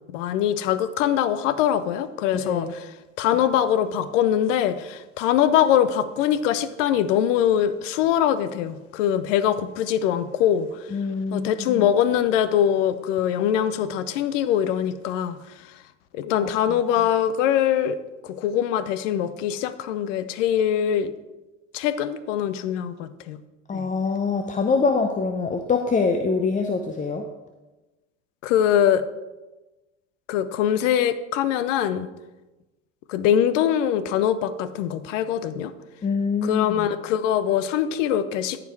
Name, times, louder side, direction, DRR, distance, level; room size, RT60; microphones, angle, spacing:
voice 1, 0.1-2.9 3.2-10.8 11.3-15.4 16.1-18.0 18.2-21.1 21.7-23.4 23.7-23.9 28.4-29.0 30.3-32.1 33.1-35.7 36.4-38.6, left 10 dB, 70° left, 14 dB, 0.7 m, -23 dB
voice 2, 2.3-2.7 10.9-11.9 16.4-16.8 23.7-27.3 36.0-36.9, left 4 dB, 20° left, 5 dB, 0.7 m, -25 dB
14.0 x 5.0 x 4.5 m, 1.1 s
hypercardioid pair, 75°, 39 cm